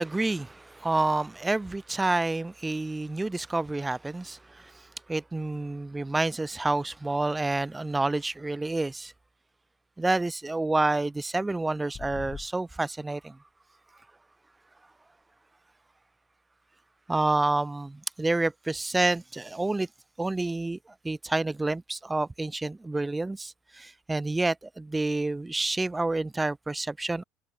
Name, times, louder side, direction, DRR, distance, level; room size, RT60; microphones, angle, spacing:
voice 1, 0.0-9.1 10.0-13.4 17.1-19.9 20.2-20.8 21.0-27.2, right 2 dB, 10° right, 4.2 m, -28 dB
sound 1, 11.9-12.5, left 6 dB, 30° left, 6.2 m, -40 dB
figure-of-eight pair, 65°, 0 cm